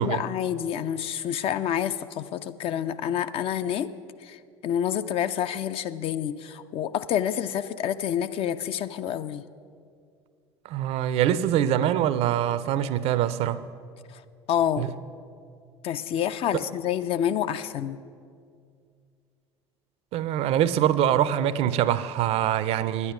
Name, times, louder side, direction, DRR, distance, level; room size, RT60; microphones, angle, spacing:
voice 1, 0.0-3.9 4.2-9.4 14.5-14.9 15.8-18.0, left 9 dB, 40° left, 0.4 m, -28 dB
voice 2, 10.6-13.6 14.8-14.9 20.1-23.1, right 11 dB, 45° right, 0.5 m, -24 dB
9.9 x 9.7 x 6.1 m
figure-of-eight pair, 65°, 15 cm